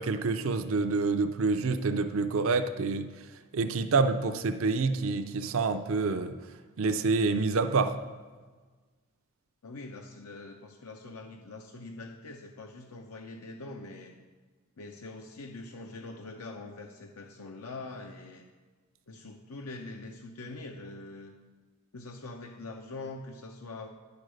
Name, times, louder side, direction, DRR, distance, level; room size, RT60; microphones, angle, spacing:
voice 1, 0.0-3.1 3.5-6.4 6.8-7.9, right 4 dB, 65° right, 9 dB, 0.5 m, -27 dB
voice 2, 9.6-14.1 14.8-18.5 19.1-21.3 21.9-23.9, left 2 dB, 85° left, 2 dB, 0.7 m, -43 dB
9.7 x 5.2 x 6.3 m, 1.4 s
head